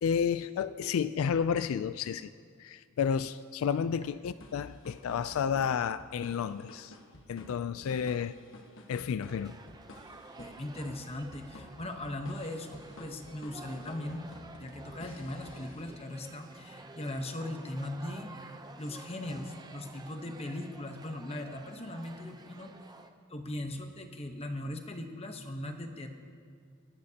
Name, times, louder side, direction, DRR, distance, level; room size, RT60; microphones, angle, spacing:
voice 1, 0.0-2.3 2.6-6.9 7.3-8.4 8.9-9.6, left 7 dB, 80° left, 0.3 m, -31 dB
sound 1, 4.4-16.4, left 1 dB, 65° left, 1.3 m, -53 dB
sound 2, 9.3-23.1, right 3 dB, 20° right, 0.6 m, -51 dB
voice 2, 10.4-14.3 14.6-18.3 18.8-22.7 23.3-26.1, left 1 dB, 30° left, 1.0 m, -39 dB
29.5 x 11.5 x 2.8 m
head